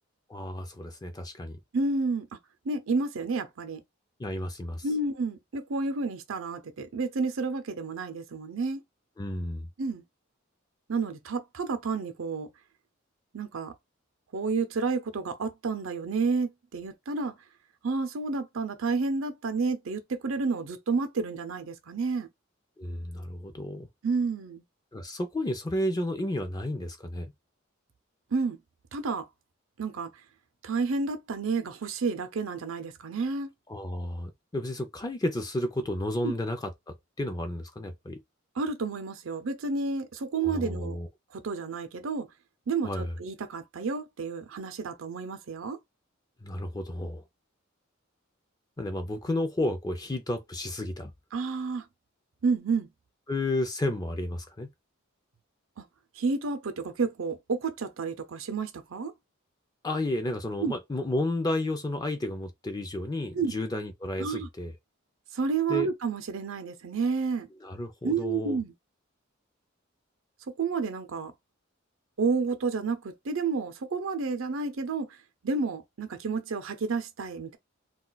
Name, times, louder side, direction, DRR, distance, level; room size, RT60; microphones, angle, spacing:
voice 1, 0.3-1.6 4.2-4.9 9.2-9.7 22.8-23.9 24.9-27.3 33.7-38.2 40.4-41.1 42.8-43.2 46.4-47.2 48.8-51.1 53.3-54.7 59.8-64.7 65.7-65.9 67.6-68.6, left 1 dB, 20° left, 0.5 m, -32 dB
voice 2, 1.7-2.3 2.6-3.8 4.8-8.8 9.8-10.0 10.9-12.5 13.3-13.7 14.3-17.3 17.8-22.3 24.0-24.6 28.3-28.6 28.9-29.3 29.8-30.1 30.6-33.5 36.2-36.3 38.6-41.0 41.3-42.3 42.7-45.8 51.3-51.9 52.4-52.9 55.8-55.9 56.1-59.1 60.6-60.8 63.3-63.6 64.2-64.5 65.3-67.5 68.0-68.7 70.5-71.3 72.2-75.2 75.4-77.6, right 4 dB, 80° right, 0.6 m, -30 dB
2.3 x 2.3 x 3.9 m
head